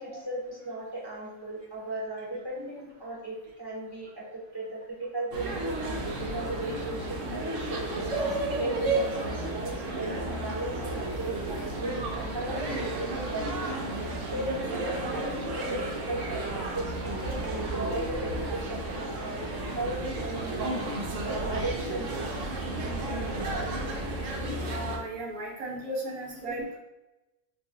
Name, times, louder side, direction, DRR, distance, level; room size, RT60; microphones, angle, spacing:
voice 1, 0.0-8.2 8.6-20.8 21.2-22.3 23.1-23.9 26.1-26.2 26.5-26.6, right 1 dB, 30° right, -6 dB, 0.5 m, -37 dB
sound 1, 5.3-25.0, right 2 dB, 70° right, 0.9 m, -32 dB
voice 2, 24.7-26.8, right 1 dB, 85° right, -2 dB, 1.2 m, -35 dB
3.0 x 2.0 x 3.7 m, 0.96 s
omnidirectional pair, 1.4 m